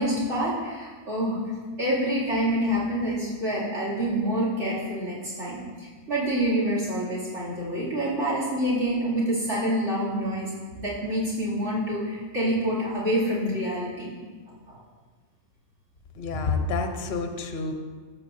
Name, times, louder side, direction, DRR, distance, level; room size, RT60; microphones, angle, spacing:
voice 1, 0.0-1.4 1.8-14.1 14.7-14.8, equal, 50° right, -9 dB, 3.3 m, -27 dB
voice 2, 16.1-17.7, left 4 dB, 45° left, 4 dB, 1.0 m, -28 dB
13.5 x 7.6 x 2.8 m, 1.5 s
omnidirectional pair, 1.6 m